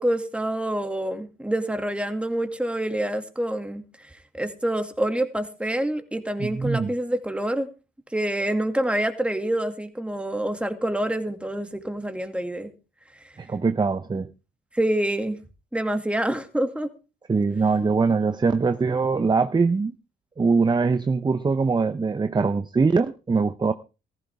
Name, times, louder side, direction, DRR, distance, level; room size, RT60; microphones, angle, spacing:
voice 1, 0.0-7.7 8.1-12.7 13.1-13.3 14.7-15.4 15.7-16.9, right 1 dB, 5° right, 2.3 m, -27 dB
voice 2, 6.4-6.9 13.4-14.3 17.3-19.9 20.4-23.7, right 4 dB, 20° right, 0.7 m, -22 dB
15.5 x 14.5 x 3.5 m
cardioid pair, 90°, 20 cm